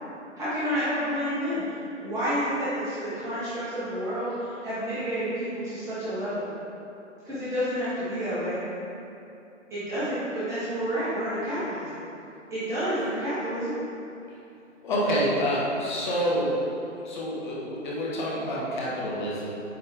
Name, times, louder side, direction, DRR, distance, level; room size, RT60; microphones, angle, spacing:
voice 1, 0.4-1.6 2.0-4.3 4.6-6.4 7.2-8.6 9.7-12.0 12.5-13.7, equal, 10° right, -13 dB, 1.2 m, -29 dB
voice 2, 14.8-16.6 17.0-19.5, equal, 40° left, -5 dB, 1.4 m, -27 dB
8.7 x 4.3 x 3.6 m, 2.8 s
hypercardioid pair, 150°, 38 cm